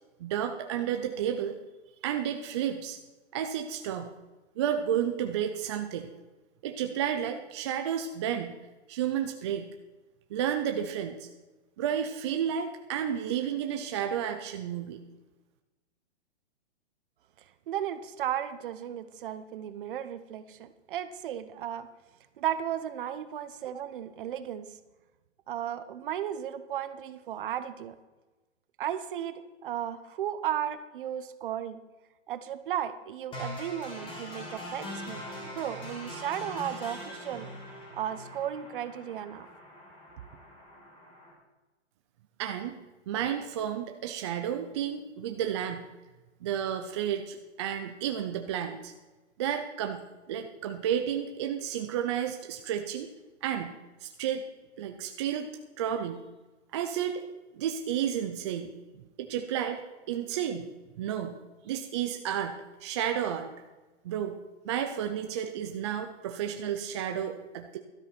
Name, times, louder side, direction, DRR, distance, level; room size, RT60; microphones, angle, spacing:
voice 1, 0.2-1.5 2.0-3.0 3.3-4.1 4.6-6.1 6.6-8.5 8.9-9.7 10.3-11.3 11.8-15.0 42.4-42.8 43.1-45.9 46.4-48.9 49.4-53.1 53.4-53.7 54.0-54.4 54.8-55.5 55.8-56.2 56.7-57.2 57.5-58.7 59.2-59.8 60.1-60.7 61.0-61.4 61.6-63.5 64.0-64.3 64.6-67.8, right 9 dB, 25° right, 5 dB, 0.5 m, -31 dB
voice 2, 17.7-21.9 22.4-24.7 25.5-28.0 28.8-31.8 32.3-37.5 37.9-39.5, right 10 dB, 45° right, 13 dB, 0.9 m, -35 dB
sound 1, 33.3-41.3, left 1 dB, 15° left, 3.0 m, -42 dB
12.5 x 8.6 x 5.8 m, 1.1 s
hypercardioid pair, 155°, 35 cm